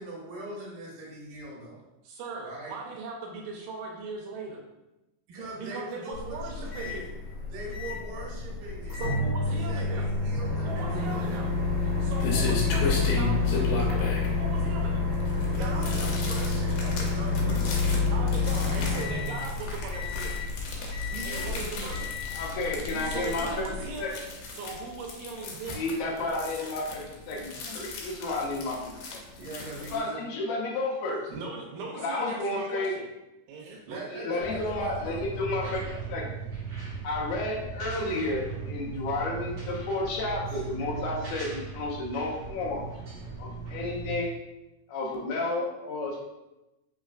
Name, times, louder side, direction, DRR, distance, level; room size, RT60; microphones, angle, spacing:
voice 1, 0.0-1.8 2.4-2.8 5.3-7.1 7.5-9.0 9.7-11.6 15.4-17.9 18.6-18.8 21.1-22.1 22.9-24.0 29.4-30.2 33.6-36.1, right 2 dB, 70° right, -4 dB, 2.5 m, -41 dB
voice 2, 2.0-4.6 5.6-7.0 9.0-10.1 10.6-11.5 11.8-15.1 15.5-15.9 18.1-20.4 21.3-22.1 23.0-24.2 24.5-25.9 31.3-33.1 33.5-34.1, right 4 dB, 90° right, 0 dB, 2.3 m, -39 dB
Microwave oven, 6.1-24.1, left 4 dB, 45° left, 1.6 m, -29 dB
sound 1, 11.4-30.0, left 2 dB, 90° left, 2.4 m, -36 dB
voice 3, 22.4-23.7 24.0-24.1 25.7-29.2 29.9-31.2 31.9-32.9 34.1-35.8 36.1-36.3 37.0-42.8 43.4-44.4 44.9-46.2, left 2 dB, 75° left, -2 dB, 2.0 m, -31 dB
sound 2, 34.4-44.2, right 5 dB, 55° right, 1.6 m, -38 dB
5.4 x 3.2 x 2.4 m, 0.97 s
omnidirectional pair, 3.8 m